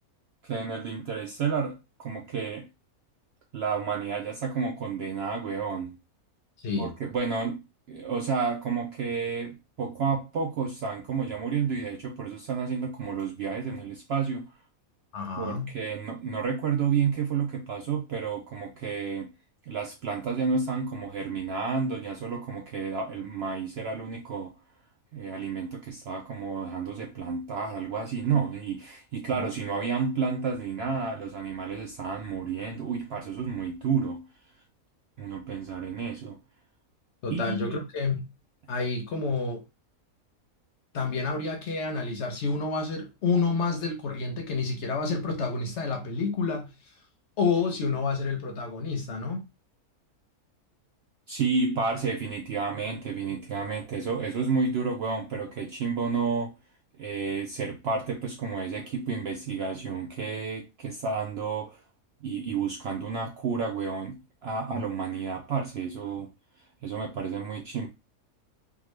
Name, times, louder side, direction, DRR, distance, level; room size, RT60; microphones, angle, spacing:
voice 1, 0.4-2.7 3.5-6.0 6.8-7.6 7.9-14.5 15.4-19.3 19.7-24.5 25.1-34.3 35.2-36.4 37.3-37.8 51.3-56.5 57.0-61.8 62.2-66.3 66.8-67.9, right 5 dB, 65° right, 0.6 m, -31 dB
voice 2, 15.1-15.7 29.3-29.4 37.2-38.2 38.7-39.6 40.9-46.7 47.4-49.4 64.7-64.8, left 4 dB, 60° left, 0.9 m, -29 dB
3.6 x 2.3 x 3.1 m
omnidirectional pair, 1.5 m